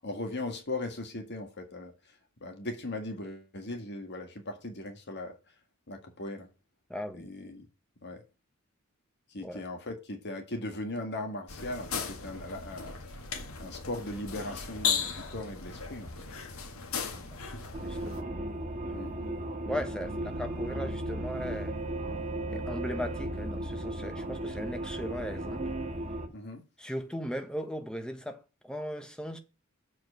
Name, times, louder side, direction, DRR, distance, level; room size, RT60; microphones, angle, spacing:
voice 1, 0.0-5.5 5.9-6.5 7.1-7.7 8.0-8.2 9.3-13.2 13.6-16.3 18.9-19.5 26.3-26.6, left 2 dB, 55° left, 1.8 m, -39 dB
voice 2, 6.9-7.3 9.4-9.6 17.1-17.4 17.8-18.3 18.9-19.0 19.7-21.8 22.5-25.6 26.8-29.4, equal, 5° left, 1.2 m, -38 dB
sound 1, 11.5-18.2, left 6 dB, 75° left, 1.7 m, -36 dB
sound 2, 17.7-26.3, right 1 dB, 35° right, 1.6 m, -35 dB
7.6 x 4.8 x 6.2 m
head